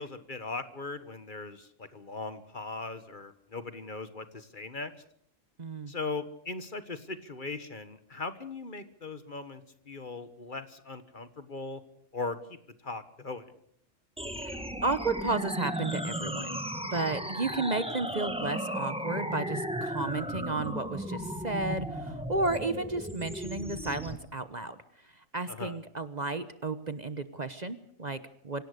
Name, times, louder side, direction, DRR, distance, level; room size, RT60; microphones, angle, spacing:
voice 1, 0.0-4.9 5.9-11.8 12.1-12.6 12.8-13.4 25.5-25.8, left 3 dB, 40° left, 11 dB, 1.5 m, -39 dB
voice 2, 5.6-5.9 14.4-16.6 16.9-24.8 25.1-28.6, right 3 dB, 35° right, 11 dB, 1.0 m, -33 dB
sound 1, 14.2-24.2, equal, 5° right, 1.7 m, -35 dB
25.5 x 17.5 x 6.6 m, 0.67 s
omnidirectional pair, 1.3 m